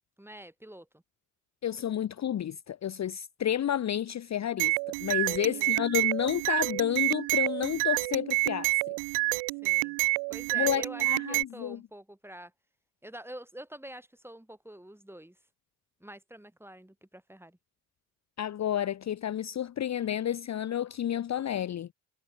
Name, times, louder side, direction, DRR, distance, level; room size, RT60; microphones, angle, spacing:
voice 1, 0.2-1.0 5.1-5.9 9.6-10.0 10.3-12.5 13.0-15.4 16.0-17.6, right 1 dB, 5° right, 4.1 m, -47 dB
voice 2, 1.6-4.7 5.0-8.7 10.6-11.8 18.4-21.9, left 10 dB, 40° left, 0.8 m, -30 dB
sound 1, 4.6-11.4, right 32 dB, 70° right, 0.7 m, -28 dB
hypercardioid pair, 40°, 42 cm